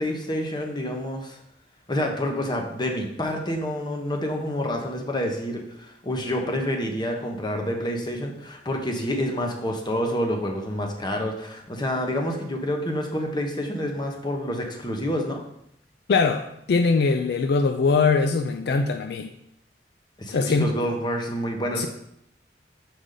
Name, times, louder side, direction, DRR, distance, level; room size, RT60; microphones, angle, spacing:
voice 1, 0.0-1.4 1.9-5.6 6.0-15.4 20.2-21.9, equal, 25° left, 2 dB, 1.0 m, -28 dB
voice 2, 16.1-19.3 20.3-20.9 21.8-21.9, left 4 dB, 65° left, 7 dB, 0.4 m, -22 dB
6.6 x 4.9 x 3.8 m, 0.76 s
head